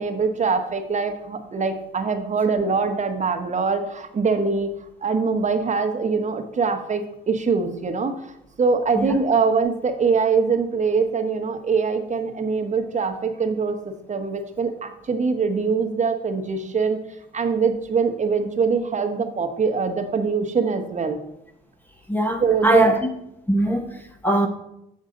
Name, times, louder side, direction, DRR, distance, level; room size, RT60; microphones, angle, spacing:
voice 1, 0.0-4.7 5.0-8.3 8.6-17.0 17.3-21.2 22.4-23.0, right 5 dB, 35° right, 7 dB, 1.0 m, -23 dB
voice 2, 22.1-23.0 23.5-24.5, right 1 dB, 10° left, 4 dB, 0.9 m, -21 dB
7.2 x 6.4 x 3.8 m, 0.82 s
cardioid pair, 90°, 20 cm